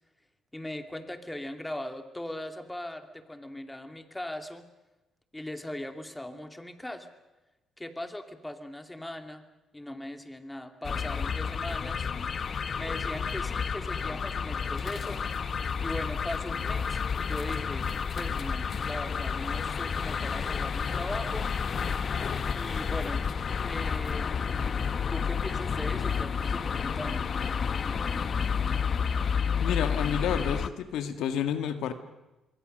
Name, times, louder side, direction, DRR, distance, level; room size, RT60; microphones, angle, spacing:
voice 1, 0.5-4.6 5.3-7.1 7.8-9.4 9.7-12.1 12.8-15.2 15.8-21.5 22.5-23.2 23.6-24.8 25.1-27.3, left 1 dB, 10° left, 7 dB, 2.5 m, -39 dB
sound 1, 10.8-30.7, left 6 dB, 50° left, 1.2 m, -30 dB
voice 2, 29.6-31.9, left 9 dB, 85° left, 9 dB, 1.8 m, -30 dB
26.5 x 22.5 x 6.6 m, 1.0 s
cardioid pair, 90°, 0 cm